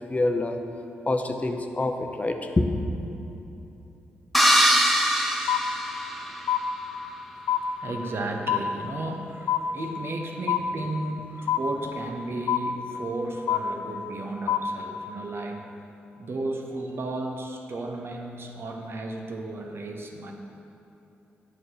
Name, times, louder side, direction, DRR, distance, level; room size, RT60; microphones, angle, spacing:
voice 1, 0.1-0.6 1.1-2.8, left 2 dB, 30° left, 5 dB, 0.7 m, -26 dB
sound 1, 4.3-6.6, equal, ahead, 0.9 m, -22 dB
voice 2, 4.5-15.7 16.2-20.3, right 2 dB, 55° right, 2 dB, 1.0 m, -35 dB
sound 2, 5.5-6.2 6.5-7.2 7.5-8.2 8.5-9.2 9.5-10.2 10.5-11.2 11.5-12.2 12.5-13.2 13.5-14.2 14.5-15.2, left 10 dB, 70° left, 0.4 m, -28 dB
8.8 x 6.4 x 4.8 m, 3.0 s
hypercardioid pair, 45°, 5 cm